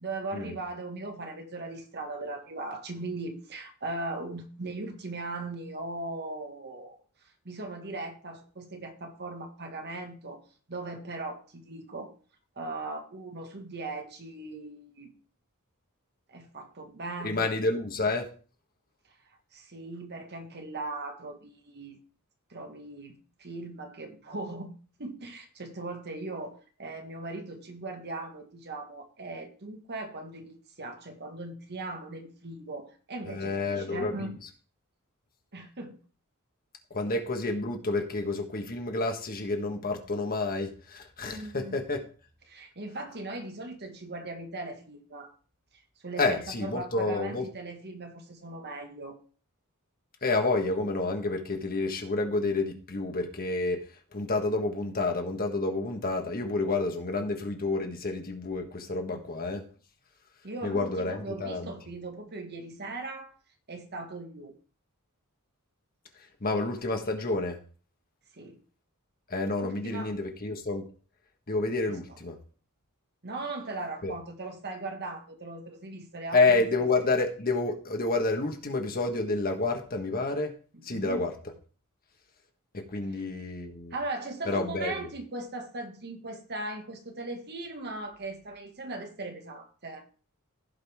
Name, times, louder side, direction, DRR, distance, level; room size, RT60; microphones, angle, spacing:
voice 1, 0.0-7.0 7.4-10.4 10.7-12.1 12.5-15.1 16.3-17.4 19.5-22.0 22.5-24.7 25.0-34.3 35.5-36.0 41.2-41.8 42.5-45.3 46.0-49.2 59.1-59.3 60.4-63.3 63.7-64.5 68.3-68.6 69.6-70.1 71.9-72.0 73.2-76.4 80.8-81.2 83.9-90.0, right 2 dB, 50° right, 1.6 m, -39 dB
voice 2, 17.2-18.3 33.3-34.3 36.9-42.0 46.2-47.4 50.2-53.8 54.1-59.6 60.6-61.7 66.4-67.6 69.3-70.8 71.5-72.4 74.0-74.1 76.3-80.5 80.8-81.3 82.7-83.9 84.5-84.9, left 3 dB, 40° left, 1.5 m, -29 dB
16.0 x 5.4 x 3.6 m
head